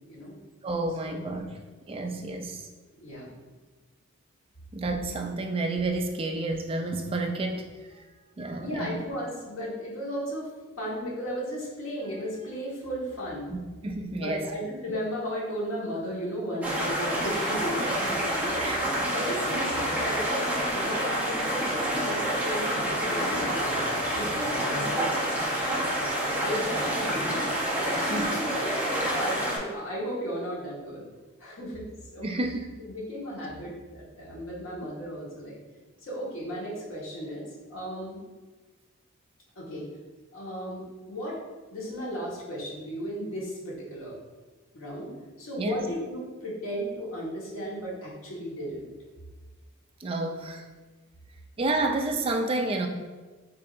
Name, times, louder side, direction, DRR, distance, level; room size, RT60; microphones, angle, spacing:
voice 1, 0.1-0.4 1.0-1.2 2.9-3.3 6.2-6.3 8.0-8.2 8.6-13.5 14.1-23.8 24.1-25.9 26.2-27.5 27.9-31.1 31.4-31.9 32.1-32.3 32.8-35.6 36.0-38.2 39.5-39.9 40.3-41.4 41.7-44.2 44.7-45.1 45.4-48.8, equal, 85° left, -5 dB, 1.4 m, -35 dB
voice 2, 0.6-1.5 1.9-2.7 4.7-7.7 8.4-9.0 13.5-14.4 18.6-18.8 28.1-28.3 32.2-32.7 45.6-45.8 50.0-50.6 51.6-52.9, right 2 dB, 25° right, 3 dB, 0.4 m, -30 dB
sound 1, 16.6-29.6, right 1 dB, 5° right, 0.9 m, -28 dB
6.7 x 2.8 x 2.6 m, 1.3 s
head